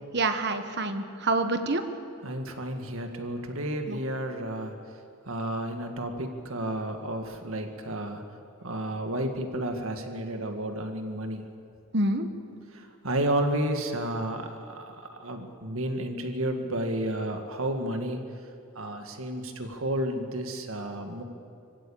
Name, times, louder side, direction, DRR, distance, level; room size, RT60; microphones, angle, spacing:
voice 1, 0.1-1.8 3.9-4.0 11.9-12.3, right 2 dB, 50° right, 8 dB, 1.4 m, -27 dB
voice 2, 2.2-4.7 5.3-8.2 8.6-11.5 12.7-18.2 18.8-21.2, right 1 dB, 70° right, 5 dB, 1.9 m, -31 dB
26.0 x 16.0 x 8.7 m, 2.5 s
head